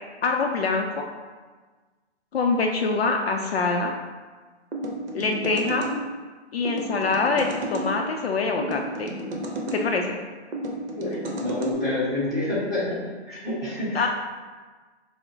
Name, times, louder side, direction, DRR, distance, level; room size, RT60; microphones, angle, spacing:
voice 1, 0.2-1.1 2.3-3.9 5.1-5.9 6.5-9.2 9.7-10.2 13.9-14.1, left 4 dB, 60° left, 2 dB, 0.5 m, -24 dB
sound 1, 4.7-6.0 6.7-7.9 8.6-9.8 10.5-11.7, right 1 dB, 55° right, 0.9 m, -32 dB
voice 2, 10.9-12.9 13.3-14.0, left 1 dB, ahead, -11 dB, 1.2 m, -28 dB
5.2 x 2.1 x 4.4 m, 1.4 s
hypercardioid pair, 160°, 35 cm